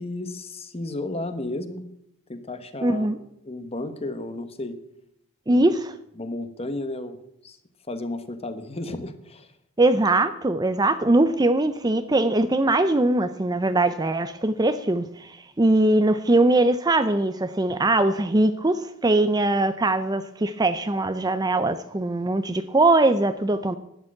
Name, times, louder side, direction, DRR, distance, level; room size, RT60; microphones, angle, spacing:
voice 1, 0.0-1.9 2.3-4.8 5.5-5.7 6.2-7.6 7.9-9.5, left 2 dB, 25° left, 10 dB, 1.2 m, -33 dB
voice 2, 2.8-3.2 5.5-5.9 9.8-23.7, right 2 dB, 15° right, 11 dB, 0.5 m, -21 dB
12.0 x 9.0 x 8.6 m, 0.78 s
head